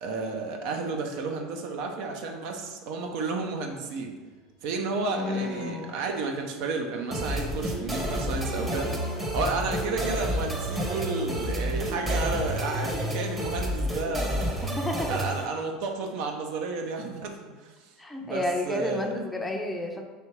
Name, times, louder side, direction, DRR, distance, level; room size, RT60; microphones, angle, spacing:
voice 1, 0.0-4.1 4.6-8.9 9.3-14.4 15.1-17.7 18.2-19.1, right 4 dB, 65° right, 3 dB, 0.6 m, -32 dB
sound 1, 3.8-9.5, left 4 dB, 85° left, 0.8 m, -47 dB
voice 2, 5.1-5.9 14.6-15.1 18.0-20.0, left 2 dB, 10° left, 3 dB, 0.5 m, -31 dB
sound 2, 7.1-15.5, equal, 20° right, 0.8 m, -30 dB
3.3 x 2.7 x 4.6 m, 1.3 s
hypercardioid pair, 90°, 0 cm